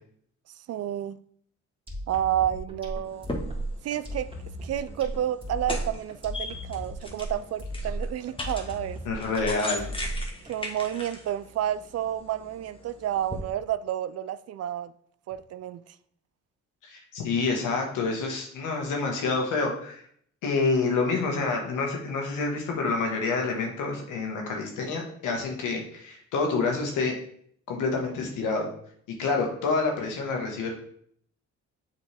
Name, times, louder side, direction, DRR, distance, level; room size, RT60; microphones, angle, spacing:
voice 1, 0.7-1.2 2.1-3.3 3.8-4.3 4.6-9.0 10.5-14.9 15.3-15.8, right 11 dB, 55° right, 0.4 m, -30 dB
sound 1, 1.9-10.5, right 1 dB, 15° right, 2.1 m, -35 dB
sound 2, 3.0-13.4, left 2 dB, 15° left, 1.2 m, -39 dB
voice 2, 9.0-9.9 16.8-20.0 20.4-27.1 27.7-28.7 29.2-30.7, left 4 dB, 90° left, 1.5 m, -28 dB
7.1 x 4.3 x 3.4 m
cardioid pair, 90°, 30 cm